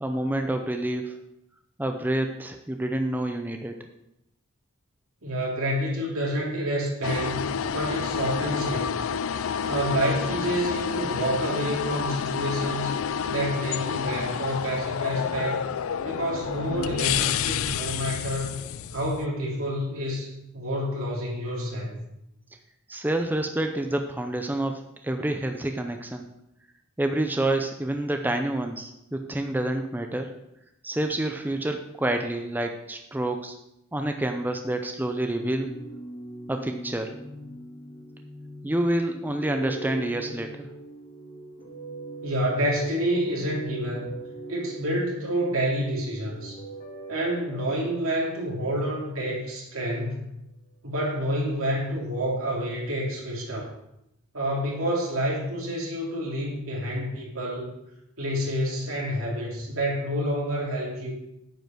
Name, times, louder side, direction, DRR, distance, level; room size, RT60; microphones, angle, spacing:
voice 1, 0.0-1.2 1.8-3.8 22.9-26.3 27.0-30.3 30.8-33.6 33.9-35.7 36.5-37.1 38.6-40.7, right 1 dB, 10° right, 5 dB, 0.5 m, -28 dB
voice 2, 5.2-7.5 7.7-9.0 9.3-12.9 13.3-15.6 16.0-18.6 18.9-20.3 20.5-22.0 42.2-44.1 44.5-46.6 47.1-50.3 50.8-53.7 54.3-57.7 58.2-61.1, equal, 75° right, -3 dB, 3.2 m, -28 dB
sound 1, 7.0-19.3, left 7 dB, 70° left, 0.4 m, -29 dB
sound 2, 35.3-49.7 49.9-50.0, right 2 dB, 40° left, 2.1 m, -41 dB
9.1 x 5.4 x 6.1 m, 0.85 s
head